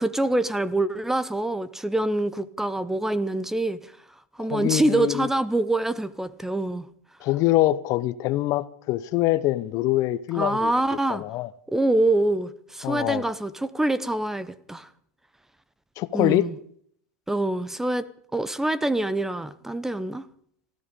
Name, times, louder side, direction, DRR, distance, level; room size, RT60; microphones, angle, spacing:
voice 1, 0.0-3.8 4.4-6.9 10.3-11.2 11.7-14.9 16.1-16.5 17.3-20.3, right 2 dB, 5° right, 0.8 m, -25 dB
voice 2, 4.4-5.3 7.2-10.7 11.1-11.5 12.8-13.2 16.0-16.5, left 16 dB, 45° left, 0.8 m, -24 dB
19.0 x 14.0 x 5.2 m
hypercardioid pair, 120°, 8 cm